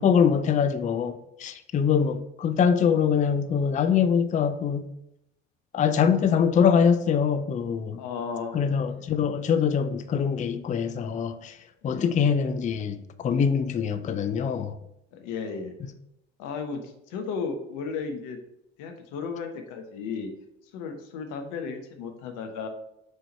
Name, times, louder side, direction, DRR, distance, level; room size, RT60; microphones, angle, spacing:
voice 1, 0.0-4.9 5.7-8.0 8.5-11.6 11.8-14.8, left 7 dB, 20° left, 0.5 m, -23 dB
voice 2, 8.0-9.1 11.8-12.1 15.1-15.7 16.4-18.4 18.8-20.3 20.7-22.7, left 5 dB, 55° left, 1.3 m, -34 dB
6.4 x 4.6 x 4.3 m
figure-of-eight pair, 60°, 36 cm